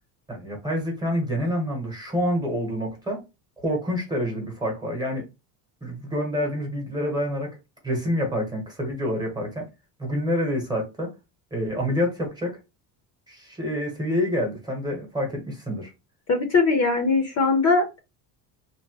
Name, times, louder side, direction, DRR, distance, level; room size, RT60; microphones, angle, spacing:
voice 1, 0.3-3.2 3.6-5.3 5.8-7.6 7.8-9.7 10.0-11.1 11.5-12.6 13.3-15.9, equal, 10° right, 1.0 m, -27 dB
voice 2, 16.3-18.0, left 4 dB, 35° left, 0.7 m, -21 dB
2.9 x 2.1 x 2.9 m
cardioid pair, 130°, 45 cm